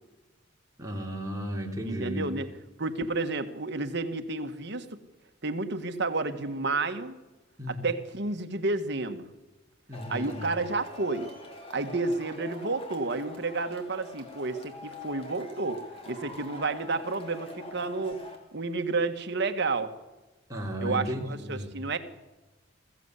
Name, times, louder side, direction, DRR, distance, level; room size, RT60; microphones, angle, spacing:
voice 1, 0.8-2.3 7.6-7.8 9.9-10.5 20.5-21.7, equal, 15° right, -1 dB, 3.4 m, -34 dB
voice 2, 1.8-2.5 2.8-5.0 5.4-7.2 7.7-9.2 10.1-11.3 11.7-15.8 16.1-18.2 18.5-19.9 20.8-22.0, right 3 dB, 55° right, 7 dB, 1.6 m, -31 dB
Male speech man speaking / Shout / Clapping, 9.9-18.4, left 2 dB, 30° left, 3.0 m, -44 dB
21.5 x 15.0 x 8.2 m, 1.1 s
head